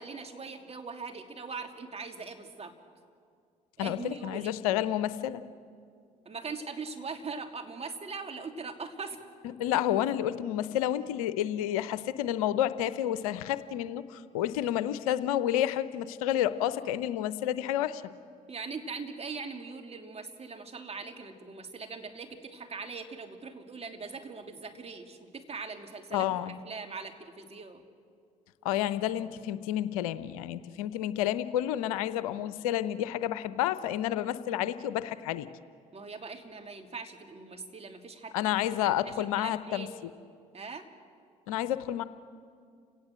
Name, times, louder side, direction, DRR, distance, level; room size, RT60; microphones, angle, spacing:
voice 1, 0.0-2.7 3.8-4.5 6.2-9.2 18.5-27.8 35.9-39.9 40.5-40.8, right 4 dB, 35° right, 4 dB, 2.9 m, -41 dB
voice 2, 3.8-5.4 9.6-18.0 26.1-26.6 28.6-35.5 38.3-39.9 41.5-42.0, left 11 dB, 80° left, 14 dB, 0.7 m, -30 dB
30.0 x 18.0 x 7.7 m, 2.2 s
hypercardioid pair, 50°, 18 cm